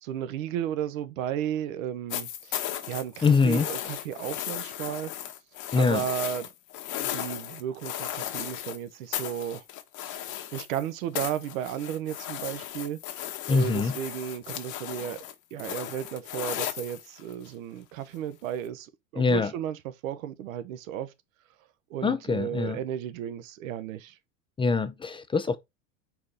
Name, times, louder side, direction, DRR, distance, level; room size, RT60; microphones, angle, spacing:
voice 1, 0.0-5.1 5.7-6.5 7.0-9.6 10.0-13.0 13.5-15.2 15.5-21.1 21.9-24.2, right 10 dB, 75° right, 1.0 m, -34 dB
sound 1, 2.1-8.8 9.1-10.9 11.1-17.5 18.6-18.7, left 12 dB, 45° left, 1.2 m, -36 dB
voice 2, 3.2-3.7 5.7-6.1 13.5-14.0 19.2-19.5 22.0-22.8 24.6-25.6, left 4 dB, 15° left, 0.5 m, -24 dB
4.7 x 4.2 x 5.1 m
hypercardioid pair, 100°, 41 cm